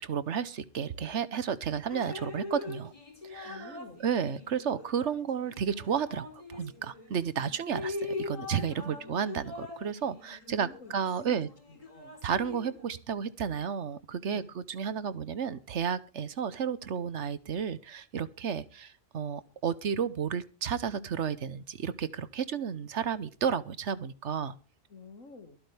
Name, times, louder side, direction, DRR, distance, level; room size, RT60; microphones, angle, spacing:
voice 1, 0.0-2.9 3.2-3.7 4.0-11.5 12.2-14.4 14.7-24.6, right 7 dB, 65° right, 15 dB, 1.2 m, -32 dB
Drip, 1.9-7.1 7.6-12.9, left 3 dB, 25° left, 4.3 m, -42 dB
voice 2, 3.4-4.0 7.3-7.6 8.8-9.2 10.4-11.4 11.7-12.2 14.3-14.5 24.9-25.6, left 3 dB, 85° left, 9 dB, 2.3 m, -50 dB
23.5 x 8.7 x 3.4 m, 0.33 s
omnidirectional pair, 1.3 m